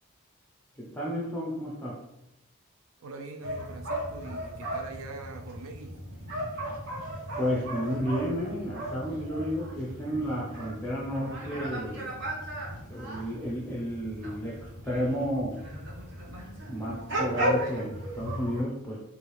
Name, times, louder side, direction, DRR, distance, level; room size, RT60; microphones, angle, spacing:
voice 1, 0.8-2.0 7.4-12.2 12.9-15.6 16.7-19.0, equal, 10° left, -5 dB, 0.6 m, -32 dB
voice 2, 3.0-6.1, right 3 dB, 70° right, 5 dB, 0.5 m, -43 dB
sound 1, 3.4-18.6, right 1 dB, 50° right, 1.1 m, -36 dB
4.8 x 2.7 x 3.2 m, 0.85 s
head